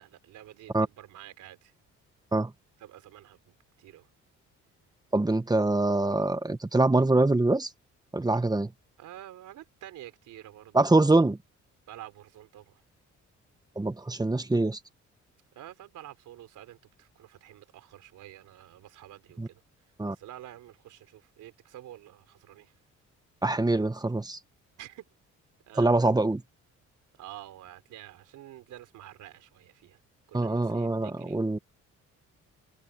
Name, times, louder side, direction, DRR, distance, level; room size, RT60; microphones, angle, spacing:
voice 1, 0.0-1.7 2.8-4.1 9.0-11.1 11.9-12.8 15.5-19.6 20.1-22.7 24.8-25.1 25.7-25.9 27.2-30.0 30.3-31.6, right 13 dB, 85° right, 4.1 m, -48 dB
voice 2, 5.1-7.7 8.1-8.7 10.7-11.4 13.8-14.8 19.4-19.5 20.0-20.1 23.4-24.4 25.8-26.4 30.3-31.6, right 2 dB, 15° right, 1.5 m, -24 dB
cardioid pair, 90°, 30 cm